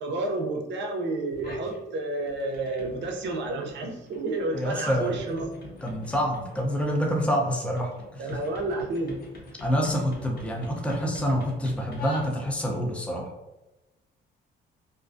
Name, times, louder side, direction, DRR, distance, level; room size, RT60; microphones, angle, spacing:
voice 1, 0.0-5.5 8.2-9.2, right 2 dB, 65° right, 2 dB, 0.5 m, -30 dB
sound 1, 1.3-1.8 2.2-12.8, left 2 dB, 50° left, 0.6 m, -44 dB
voice 2, 4.5-5.1 5.8-8.2 9.6-13.3, equal, 5° left, 0 dB, 0.5 m, -27 dB
2.4 x 2.2 x 2.5 m, 1.0 s
cardioid pair, 90°, 20 cm